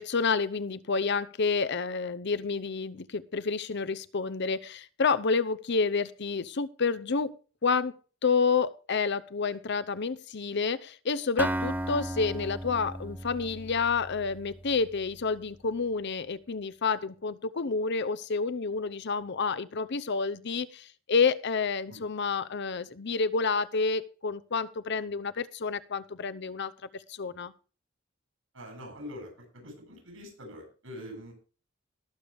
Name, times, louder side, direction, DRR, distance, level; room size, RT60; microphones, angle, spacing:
voice 1, 0.0-7.9 8.2-27.5, left 4 dB, 60° left, 0.7 m, -29 dB
Acoustic guitar, 11.4-15.2, right 1 dB, 10° right, 0.5 m, -35 dB
voice 2, 28.5-31.3, left 1 dB, 80° right, 7.8 m, -44 dB
19.0 x 7.0 x 3.5 m
head